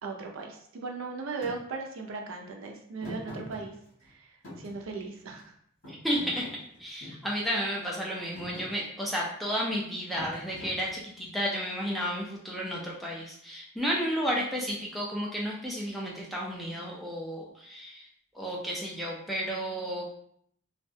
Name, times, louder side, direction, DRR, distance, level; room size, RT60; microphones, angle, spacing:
voice 1, 0.0-3.7 4.0-4.3 4.6-5.5, right 4 dB, 65° right, 2 dB, 0.4 m, -37 dB
Thump thud, 1.4-1.6 3.0-4.1 4.4-5.4 5.8-7.3 7.8-8.1 8.3-8.7 10.1-11.2, left 1 dB, 65° left, 1.2 m, -44 dB
voice 2, 5.9-18.1 18.3-20.2, equal, ahead, -4 dB, 0.3 m, -32 dB
2.6 x 2.1 x 2.6 m, 0.68 s
head